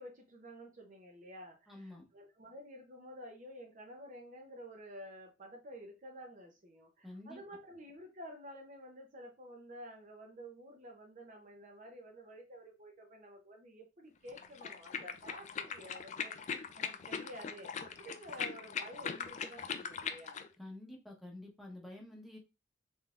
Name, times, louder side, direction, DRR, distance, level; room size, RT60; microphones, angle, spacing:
voice 1, 0.0-20.4, equal, 40° right, 2 dB, 0.7 m, -51 dB
voice 2, 1.7-2.0 7.0-7.4 20.6-22.4, left 1 dB, ahead, 0 dB, 0.9 m, -49 dB
sound 1, 14.3-20.5, left 7 dB, 40° left, 0.3 m, -41 dB
3.8 x 3.4 x 2.4 m, 0.28 s
head